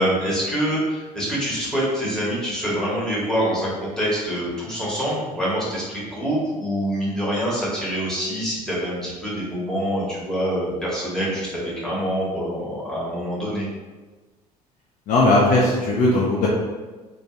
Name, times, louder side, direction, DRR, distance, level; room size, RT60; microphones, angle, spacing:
voice 1, 0.0-13.7, equal, 5° left, -7 dB, 1.1 m, -25 dB
voice 2, 15.1-16.5, left 2 dB, 40° left, -4 dB, 0.5 m, -18 dB
2.5 x 2.4 x 3.0 m, 1.3 s
figure-of-eight pair, 60°, 20 cm